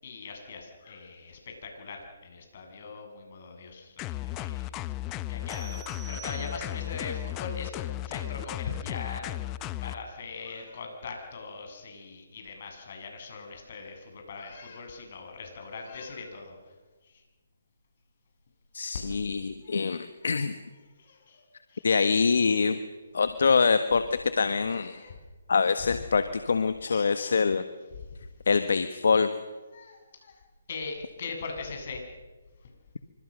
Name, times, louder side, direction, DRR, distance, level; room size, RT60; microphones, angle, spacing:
voice 1, 0.0-5.8 6.1-9.5 9.8-16.6 17.0-17.2 19.6-19.8 20.3-20.4 21.0-21.4 21.7-21.9 24.7-25.2 26.9-27.4 29.7-30.4 30.7-32.0, left 4 dB, 50° left, 3 dB, 8.0 m, -41 dB
sound 1, 4.0-10.0, left 15 dB, 20° left, 0.7 m, -35 dB
sound 2, 5.5-7.0, right 11 dB, 10° right, 2.3 m, -47 dB
voice 2, 18.7-20.5 21.8-22.8 23.1-24.9 25.5-27.6 28.5-29.3, left 5 dB, 70° left, 10 dB, 1.6 m, -24 dB
27.5 x 25.0 x 6.6 m, 1.3 s
hypercardioid pair, 150°, 0 cm